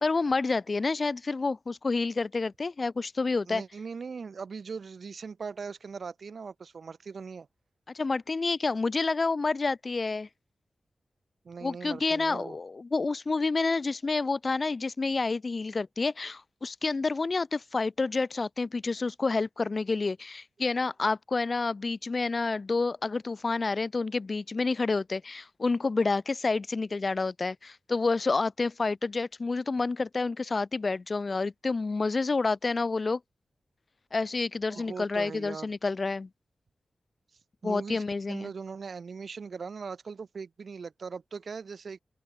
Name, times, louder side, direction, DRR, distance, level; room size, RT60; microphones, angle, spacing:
voice 1, 0.0-3.6 7.9-10.3 11.6-33.2 34.1-36.3 37.6-38.5, left 3 dB, 40° left, 0.8 m, -29 dB
voice 2, 3.5-7.5 11.4-12.6 20.7-20.9 34.7-35.7 37.6-42.0, right 5 dB, 65° right, 2.0 m, -40 dB
open air
wide cardioid pair, 100°, 0 cm